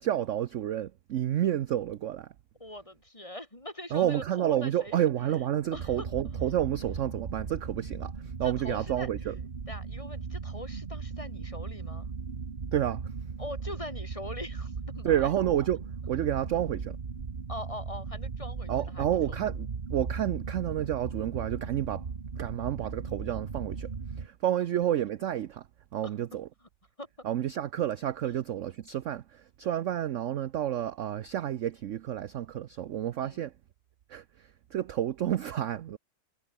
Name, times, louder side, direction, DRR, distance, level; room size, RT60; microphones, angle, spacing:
voice 1, 0.0-2.3 3.9-9.3 12.7-13.0 15.0-17.0 18.7-22.0 22.4-23.9 24.2-25.7 25.9-26.5 27.2-33.5 34.1-36.0, right 11 dB, 65° right, 0.8 m, -30 dB
voice 2, 2.6-5.0 5.7-6.1 8.4-9.1 9.7-12.1 13.4-15.3 16.2-16.4 17.5-19.1 26.0-26.2 26.6-26.7 27.0-27.1 33.2-33.5, left 1 dB, 15° left, 3.8 m, -42 dB
sound 1, 5.7-24.3, right 5 dB, 30° right, 1.3 m, -37 dB
omnidirectional pair, 2.0 m